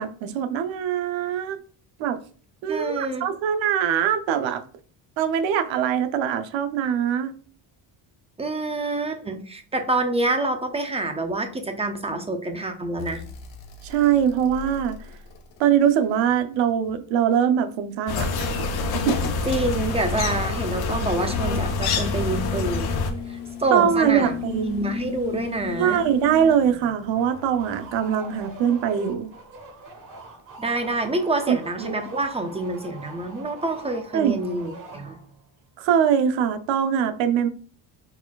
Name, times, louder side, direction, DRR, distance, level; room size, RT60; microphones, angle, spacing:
voice 1, 0.0-1.6 2.0-2.2 2.6-4.6 5.2-7.3 13.8-15.0 15.6-18.3 19.1-19.2 23.7-24.7 25.8-29.3 31.5-32.0 34.1-34.4 35.8-37.5, right 8 dB, 80° right, 0.7 m, -22 dB
voice 2, 2.7-3.3 8.4-13.2 19.5-23.0 23.3-24.4 24.6-26.0 30.6-35.2, right 2 dB, 15° right, 0.4 m, -27 dB
sound 1, 13.0-17.1 18.4-29.6 31.2-31.3, left 8 dB, 90° left, 1.1 m, -39 dB
sound 2, 18.1-23.1, left 4 dB, 55° left, 0.8 m, -26 dB
sound 3, 27.1-35.5, right 2 dB, 45° right, 1.3 m, -43 dB
4.5 x 4.3 x 2.3 m
cardioid pair, 140°, 45 cm